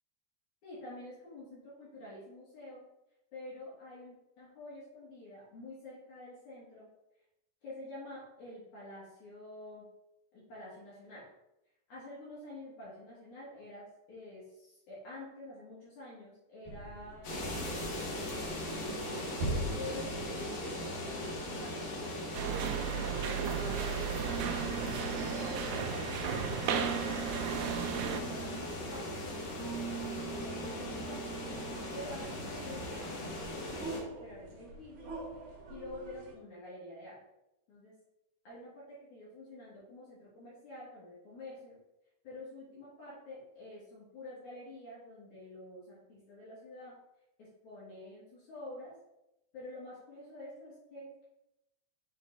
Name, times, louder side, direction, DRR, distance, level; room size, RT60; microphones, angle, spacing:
voice 1, 0.6-2.9 3.3-6.9 7.6-9.9 10.3-11.3 11.9-19.0 19.8-21.9 22.4-26.0 26.5-31.3 31.9-35.2 35.7-37.2 37.7-38.0 38.4-41.8 42.2-47.0 47.4-49.0 49.5-51.2, left 1 dB, 60° left, -8 dB, 3.1 m, -48 dB
sound 1, 16.7-36.3, right 4 dB, 55° right, 2.5 m, -43 dB
sound 2, 17.2-34.0, left 1 dB, 85° left, 3.3 m, -39 dB
sound 3, 22.3-28.2, right 8 dB, 80° right, 1.9 m, -35 dB
7.1 x 4.1 x 3.9 m, 0.89 s
omnidirectional pair, 4.0 m